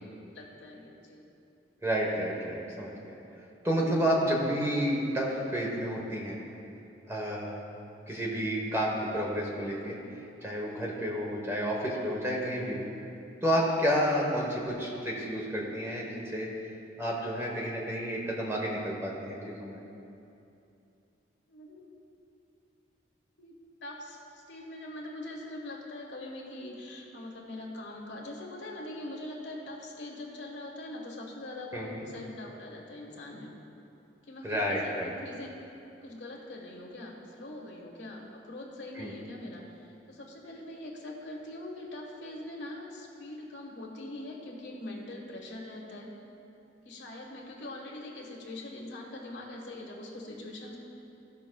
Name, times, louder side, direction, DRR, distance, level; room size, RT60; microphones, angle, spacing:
voice 1, 0.3-1.3 21.5-21.9 23.4-33.5 34.2-35.5 36.0-46.1 46.8-50.8, left 1 dB, 80° left, -1 dB, 1.3 m, -43 dB
voice 2, 1.8-3.2 3.6-6.4 7.1-7.5 8.1-10.0 10.4-12.8 13.4-16.5 17.0-19.8 31.7-32.0 34.4-35.1 39.0-39.1, equal, 15° right, -2 dB, 1.0 m, -30 dB
15.0 x 6.1 x 2.3 m, 2.8 s
head